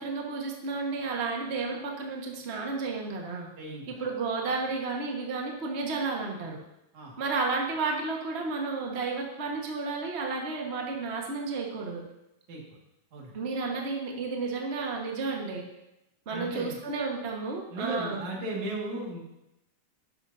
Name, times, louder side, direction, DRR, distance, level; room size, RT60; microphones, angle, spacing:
voice 1, 0.0-3.5 4.0-6.6 7.2-12.0 13.3-15.6 16.3-18.2, right 4 dB, 40° right, 0 dB, 0.9 m, -32 dB
voice 2, 3.6-3.9 6.9-7.2 12.5-12.6 13.1-13.4 16.3-16.8 17.7-19.2, right 1 dB, 70° right, -2 dB, 3.3 m, -36 dB
11.5 x 11.0 x 2.7 m, 0.89 s
omnidirectional pair, 3.5 m